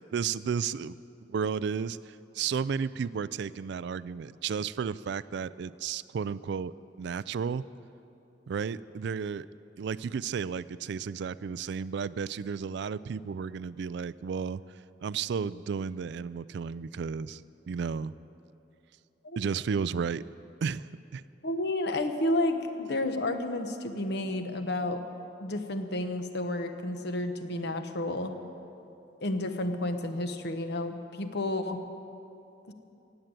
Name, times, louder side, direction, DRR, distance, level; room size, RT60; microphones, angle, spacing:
voice 1, 0.1-1.0 1.3-6.7 7.0-7.6 8.5-9.5 9.8-14.6 15.0-17.4 17.7-18.1 19.4-20.2 20.6-21.2, right 6 dB, 65° right, 18 dB, 0.3 m, -33 dB
voice 2, 21.4-25.0 25.4-28.3 29.2-31.8 32.7-32.8, left 1 dB, 60° left, 7 dB, 1.0 m, -31 dB
16.5 x 8.1 x 8.9 m, 2.8 s
head